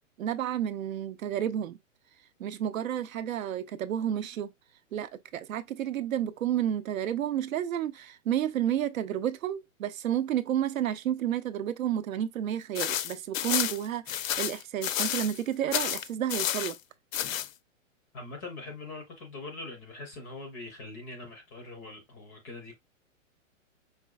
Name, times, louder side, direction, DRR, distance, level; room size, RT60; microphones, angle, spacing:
voice 1, 0.2-1.8 2.4-4.5 4.9-16.8, right 10 dB, 85° right, 0.6 m, -31 dB
sound 1, 12.7-15.4 15.7-16.8 17.1-17.5, left 11 dB, 75° left, 0.5 m, -30 dB
voice 2, 18.1-22.8, left 2 dB, 15° left, 0.5 m, -42 dB
5.0 x 2.3 x 2.3 m
hypercardioid pair, 155°, 40 cm